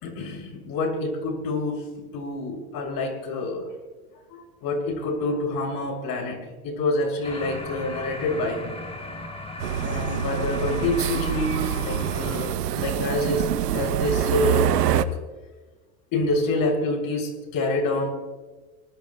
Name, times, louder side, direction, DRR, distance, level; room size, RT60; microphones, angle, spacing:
voice 1, 0.0-1.9 2.1-3.7 4.3-8.8 9.8-13.5 13.7-15.1 16.1-18.1, left 2 dB, 45° left, 2 dB, 6.3 m, -27 dB
sound 1, 7.2-12.5, left 2 dB, 15° left, 4.1 m, -37 dB
sound 2, 9.6-15.1, right 10 dB, 85° right, 0.9 m, -25 dB
24.5 x 20.5 x 2.3 m, 1.2 s
hypercardioid pair, 95°, 47 cm